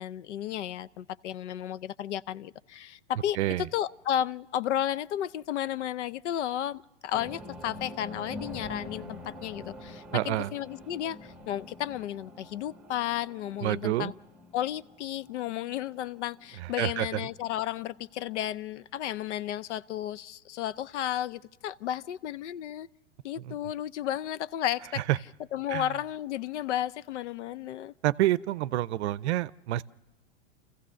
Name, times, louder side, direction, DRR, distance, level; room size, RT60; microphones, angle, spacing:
voice 1, 0.0-14.1 14.5-22.9 23.2-25.0 25.5-27.9, left 11 dB, 80° left, 0.6 m, -33 dB
voice 2, 3.4-3.7 10.1-10.5 13.6-14.1 16.6-17.2 23.4-23.5 25.1-25.2 25.7-25.9 28.0-29.8, right 15 dB, 70° right, 0.6 m, -28 dB
sound 1, 7.1-17.6 17.9-18.0 18.3-18.4, left 1 dB, 5° right, 1.3 m, -46 dB
27.0 x 15.5 x 6.3 m
hypercardioid pair, 120°, 35 cm